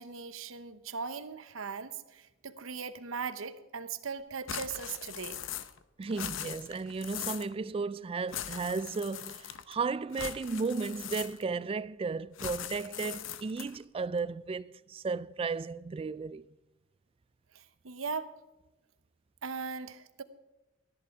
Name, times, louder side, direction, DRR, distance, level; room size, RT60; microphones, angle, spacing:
voice 1, 0.0-5.4 17.5-18.3 19.4-20.2, right 5 dB, 80° right, 0.9 m, -39 dB
sound 1, 4.5-5.8 6.1-7.5 8.3-9.7 10.1-11.6 12.4-13.8, left 10 dB, 70° left, 0.7 m, -40 dB
voice 2, 6.0-16.5, right 4 dB, 25° right, 0.3 m, -34 dB
13.5 x 11.0 x 4.7 m
head